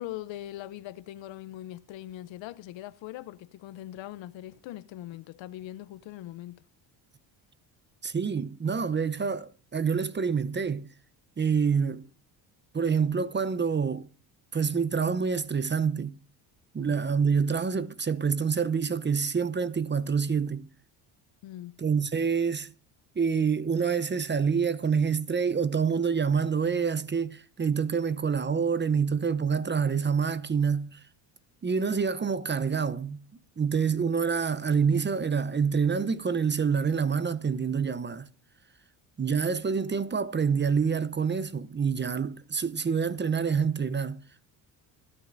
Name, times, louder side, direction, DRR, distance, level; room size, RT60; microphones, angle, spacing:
voice 1, 0.0-6.6 16.8-16.9 21.4-21.8, left 14 dB, 65° left, 0.7 m, -41 dB
voice 2, 8.0-10.9 11.4-12.1 12.7-14.1 14.5-16.2 16.7-20.7 21.8-22.7 23.2-31.0 31.6-33.2 33.6-38.3 39.2-44.5, right 6 dB, 20° right, 0.7 m, -27 dB
24.5 x 9.3 x 2.6 m
supercardioid pair, 80°, 49 cm